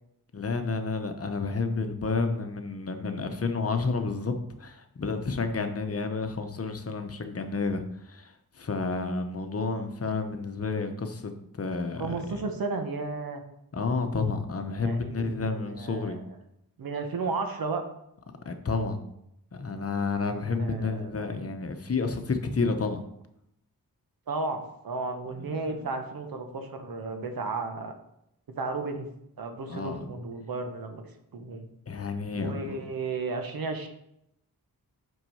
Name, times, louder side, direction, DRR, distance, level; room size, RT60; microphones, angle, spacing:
voice 1, 0.3-12.5 13.7-16.2 18.4-19.0 19.5-23.0 25.4-25.9 29.7-30.0 31.9-32.8, left 4 dB, 40° left, 7 dB, 0.9 m, -30 dB
voice 2, 12.0-13.4 14.8-16.3 16.8-17.8 20.6-21.3 24.3-27.9 28.6-29.1 29.4-31.0 31.3-31.7 32.3-33.9, right 3 dB, 80° right, 5 dB, 1.2 m, -33 dB
6.0 x 5.5 x 5.5 m, 0.79 s
wide cardioid pair, 95°, 35 cm